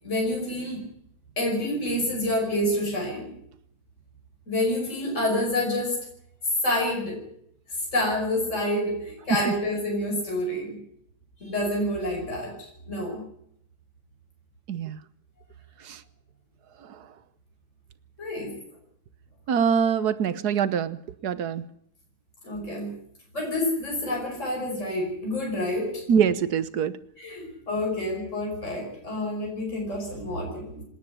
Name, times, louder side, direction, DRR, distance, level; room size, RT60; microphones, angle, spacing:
voice 1, 0.0-0.8 1.4-3.3 4.5-6.0 6.6-7.2 7.7-10.8 11.4-13.3 18.2-18.5 22.4-22.9 23.3-26.0 27.2-30.8, left 1 dB, 50° left, -1 dB, 6.1 m, -28 dB
voice 2, 19.5-21.0 21.2-21.6 26.1-26.9, right 7 dB, 80° right, 15 dB, 1.5 m, -23 dB
26.5 x 10.0 x 9.9 m, 0.70 s
omnidirectional pair, 1.7 m